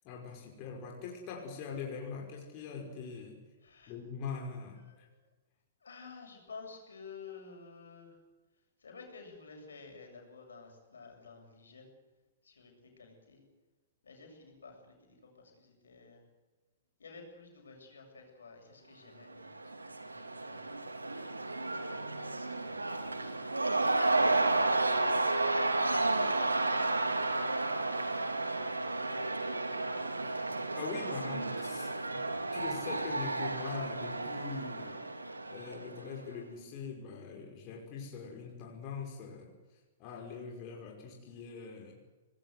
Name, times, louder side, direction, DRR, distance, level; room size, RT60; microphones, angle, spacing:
voice 1, 0.0-3.4 3.9-5.1 30.8-32.2 32.5-35.0 35.5-39.5 40.0-42.0, left 5 dB, 35° left, 0 dB, 5.5 m, -42 dB
voice 2, 3.6-4.0 4.7-5.2 5.8-8.2 8.8-11.9 12.4-13.4 14.0-16.3 17.0-21.2, left 4 dB, 70° left, 2 dB, 7.6 m, -53 dB
Cheering / Crowd, 19.3-36.2, right 2 dB, 85° right, 2.7 m, -32 dB
25.5 x 20.5 x 8.1 m, 1.2 s
figure-of-eight pair, 110°, 0 cm